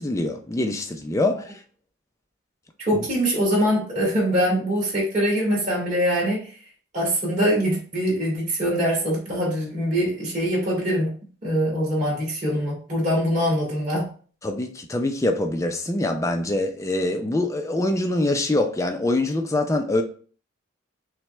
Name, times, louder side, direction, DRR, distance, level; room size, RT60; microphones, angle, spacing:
voice 1, 0.0-1.6 14.4-20.0, left 2 dB, 15° left, 0.4 m, -24 dB
voice 2, 2.8-6.5 6.9-11.1 11.4-14.1, equal, 35° right, 2.2 m, -23 dB
5.9 x 2.2 x 3.2 m
head